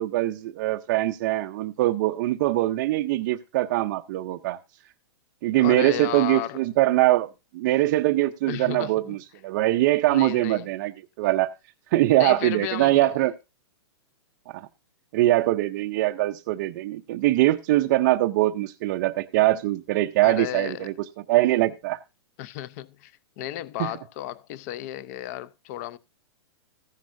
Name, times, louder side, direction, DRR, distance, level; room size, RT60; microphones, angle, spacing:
voice 1, 0.0-4.6 5.4-9.2 9.4-10.9 11.2-11.5 11.9-13.3 14.5-14.7 15.1-20.9 21.3-22.0 23.8-23.9, right 16 dB, 35° right, 0.5 m, -22 dB
voice 2, 5.6-6.6 8.5-9.2 10.1-10.7 12.2-13.3 20.2-20.9 22.4-23.1 23.4-26.0, left 13 dB, 35° left, 0.6 m, -33 dB
14.5 x 10.5 x 2.6 m
hypercardioid pair, 160°, 15 cm